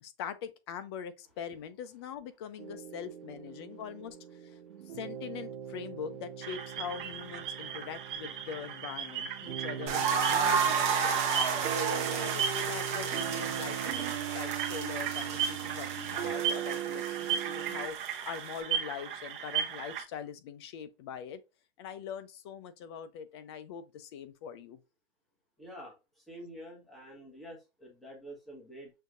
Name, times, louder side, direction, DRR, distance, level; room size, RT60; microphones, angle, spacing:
voice 1, 0.0-4.2 4.4-4.5 4.9-11.2 11.7-18.0 18.2-21.4 21.8-24.8, left 8 dB, 25° left, 0.5 m, -42 dB
sound 1, 2.6-17.9, right 10 dB, 90° right, 0.5 m, -40 dB
sound 2, 6.4-20.0, right 8 dB, 55° right, 1.0 m, -37 dB
sound 3, 9.9-18.6, right 6 dB, 20° right, 0.9 m, -32 dB
voice 2, 25.6-28.9, equal, ahead, 1.3 m, -47 dB
6.4 x 2.7 x 2.5 m
hypercardioid pair, 160°, 31 cm